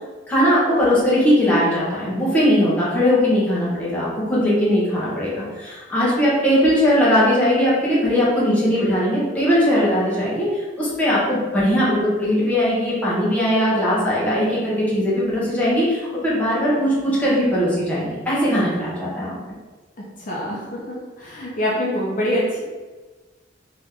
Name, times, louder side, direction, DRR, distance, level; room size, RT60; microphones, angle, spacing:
voice 1, 0.3-19.4, equal, 10° left, -8 dB, 1.2 m, -19 dB
voice 2, 20.3-20.8 21.2-22.6, equal, 45° left, -6 dB, 0.7 m, -24 dB
3.5 x 3.0 x 3.5 m, 1.3 s
head